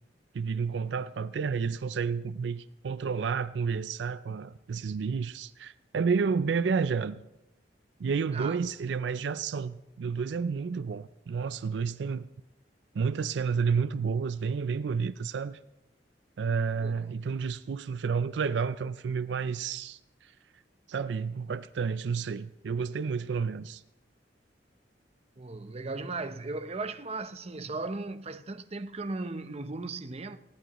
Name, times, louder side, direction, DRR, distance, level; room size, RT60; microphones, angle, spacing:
voice 1, 0.3-7.2 8.0-12.3 12.9-15.6 16.4-20.3 20.9-23.8, right 5 dB, 75° right, 0.4 m, -30 dB
voice 2, 25.4-30.4, right 3 dB, 35° right, 0.7 m, -36 dB
20.0 x 16.0 x 3.0 m
head